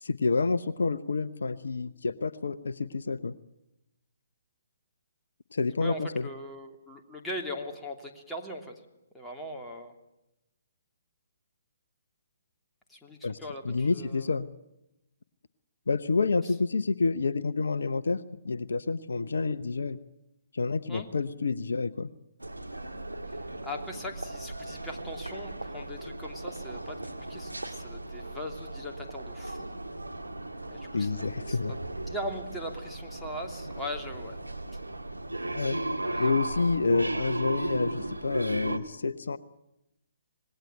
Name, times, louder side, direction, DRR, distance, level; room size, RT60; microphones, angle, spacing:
voice 1, 0.0-3.3 5.5-6.2 13.2-13.4 13.6-14.5 15.9-18.2 18.4-20.0 20.5-22.1 30.9-31.7 35.5-35.8 36.2-39.4, left 4 dB, 65° left, 13 dB, 0.9 m, -28 dB
voice 2, 5.8-8.8 9.1-9.9 12.9-14.3 16.3-16.5 20.9-21.1 23.3-23.4 23.6-29.7 30.7-31.8 32.1-34.4 36.0-36.3, equal, 5° left, 0 dB, 3.0 m, -40 dB
sound 1, 22.4-38.8, right 2 dB, 90° right, 1.8 m, -36 dB
26.5 x 20.0 x 9.0 m, 0.88 s
figure-of-eight pair, 130°, 0 cm